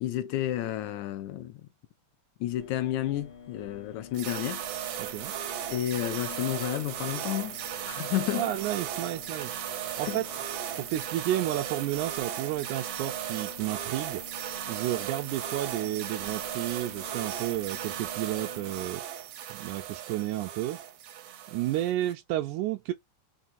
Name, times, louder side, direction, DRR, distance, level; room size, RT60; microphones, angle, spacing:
voice 1, 0.0-1.6 2.4-4.6 5.7-7.6 7.9-8.5 10.0-10.2, left 13 dB, 80° left, 1.9 m, -31 dB
sound 1, 2.6-18.9, left 6 dB, 55° left, 1.6 m, -49 dB
sound 2, 4.1-22.1, right 11 dB, 70° right, 1.6 m, -36 dB
voice 2, 5.0-5.3 8.3-9.7 10.0-10.3 10.8-19.0 19.5-20.8 21.5-22.9, right 14 dB, 85° right, 2.1 m, -32 dB
5.4 x 3.0 x 2.5 m
omnidirectional pair, 3.5 m